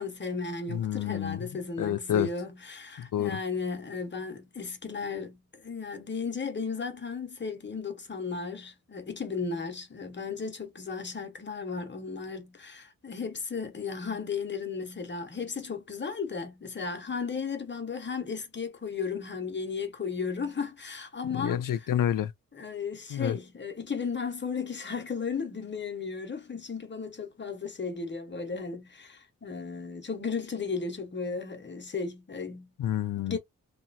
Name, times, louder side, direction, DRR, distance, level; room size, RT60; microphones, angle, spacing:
voice 1, 0.0-21.6 22.5-32.7 33.2-33.4, left 5 dB, 35° left, 0.9 m, -35 dB
voice 2, 0.7-1.4 1.8-2.3 3.0-3.4 21.3-22.3 23.1-23.4 32.8-33.4, left 11 dB, 70° left, 0.5 m, -29 dB
2.9 x 2.4 x 2.5 m
wide cardioid pair, 125°, 34 cm